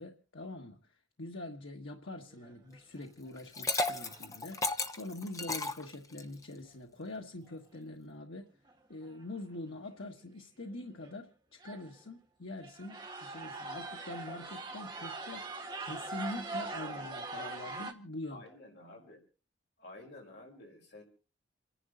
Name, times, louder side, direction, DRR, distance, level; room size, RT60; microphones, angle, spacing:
voice 1, 0.0-8.5 8.9-18.4, left 2 dB, 90° left, 2 dB, 1.5 m, -44 dB
sound 1, 2.3-2.7 3.3-3.4 3.7-4.3 7.5-7.6 8.7-8.8 9.0-9.4 9.8-9.9 10.7-10.8 11.0-11.2 11.6-12.0 12.6-17.9, right 3 dB, 20° right, 1.6 m, -42 dB
Liquid, 3.4-6.4, left 3 dB, 15° left, 0.9 m, -34 dB
voice 2, 18.3-19.2 19.8-21.0, left 2 dB, 65° left, 1 dB, 4.9 m, -51 dB
28.5 x 11.0 x 3.9 m, 0.36 s
head